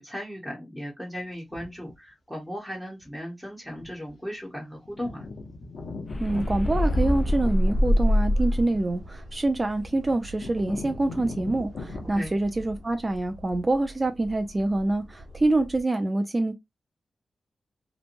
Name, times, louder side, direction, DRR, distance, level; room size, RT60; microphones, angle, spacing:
voice 1, 0.0-5.3 12.1-12.3, equal, 5° left, 1.0 m, -37 dB
sound 1, 1.5-1.9 3.0-3.1 3.7-4.1 4.4-4.5 4.7-12.2, left 3 dB, 70° left, 0.7 m, -40 dB
sound 2, 6.1-8.9, equal, 40° left, 0.5 m, -23 dB
sound 3, 6.1-15.8, equal, 70° right, 0.9 m, -45 dB
voice 2, 6.2-16.6, right 2 dB, 25° right, 0.4 m, -26 dB
2.9 x 2.1 x 2.5 m
wide cardioid pair, 95°, 0 cm